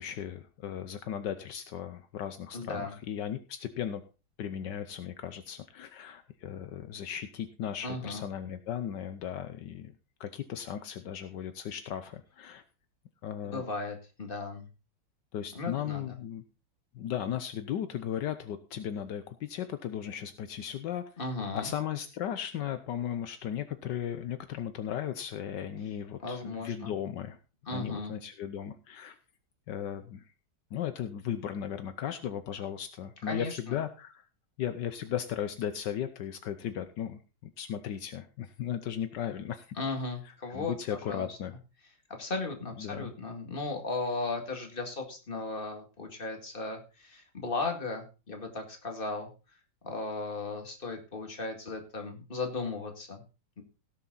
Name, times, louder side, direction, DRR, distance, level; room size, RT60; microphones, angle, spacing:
voice 1, 0.0-4.0 4.4-9.9 10.2-12.6 13.2-13.6 15.3-16.4 16.9-21.0 21.5-27.4 27.7-29.2 29.7-30.2 30.7-34.2 34.6-39.7 40.5-41.5 42.8-43.1, left 9 dB, 75° left, 10 dB, 1.4 m, -36 dB
voice 2, 2.5-3.0 7.8-8.2 13.5-14.7 15.5-16.2 21.2-21.7 26.2-26.9 27.7-28.1 33.3-33.8 39.8-41.4 42.2-49.3 49.8-53.2 53.6-53.7, left 3 dB, 30° left, 3 dB, 2.3 m, -36 dB
17.0 x 7.3 x 4.0 m, 0.32 s
omnidirectional pair, 1.9 m